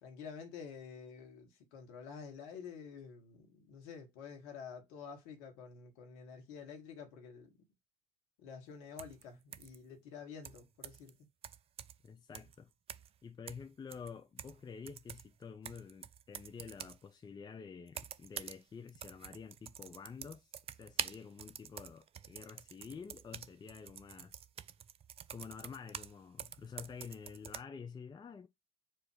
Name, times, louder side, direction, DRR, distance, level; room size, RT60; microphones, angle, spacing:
voice 1, 0.0-7.5 8.4-11.2, left 6 dB, 60° left, 1.3 m, -49 dB
sound 1, 9.0-9.2 9.5-9.8 10.4-11.1 11.4-12.1 12.3-12.5 12.9-13.2 13.5-14.6 14.9-17.0 17.9-18.6 18.9-26.1 26.4-27.6, right 9 dB, 30° right, 0.4 m, -46 dB
voice 2, 12.0-12.7 13.2-24.4 25.3-28.5, left 6 dB, 20° left, 0.6 m, -49 dB
4.8 x 2.5 x 4.5 m
figure-of-eight pair, 55°, 20 cm